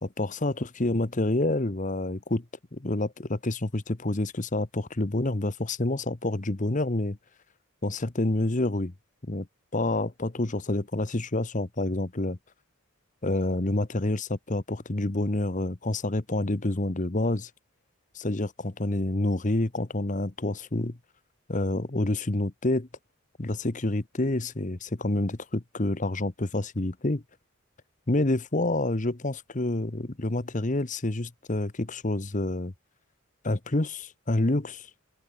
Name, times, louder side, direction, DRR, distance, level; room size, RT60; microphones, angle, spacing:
voice 1, 0.0-2.4 2.7-7.2 7.8-8.9 9.3-9.5 9.7-12.4 13.2-17.5 18.1-21.0 21.5-22.9 23.4-27.2 28.1-32.7 33.4-34.9, left 2 dB, 35° left, 1.1 m, -28 dB
head